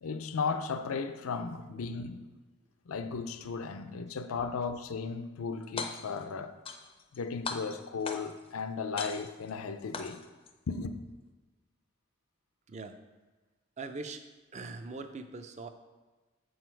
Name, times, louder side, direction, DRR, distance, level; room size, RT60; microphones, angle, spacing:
voice 1, 0.0-2.3 2.9-6.6 7.1-10.2 10.7-11.0, left 5 dB, 80° left, 0.5 m, -35 dB
sound 1, 5.6-6.2 6.6-7.2 7.4-8.5 9.0-9.5 9.9-10.5, left 4 dB, 25° left, 0.4 m, -39 dB
voice 2, 12.7-13.0 13.8-14.2 14.5-15.7, right 3 dB, 30° right, 0.5 m, -42 dB
6.8 x 6.4 x 4.5 m
head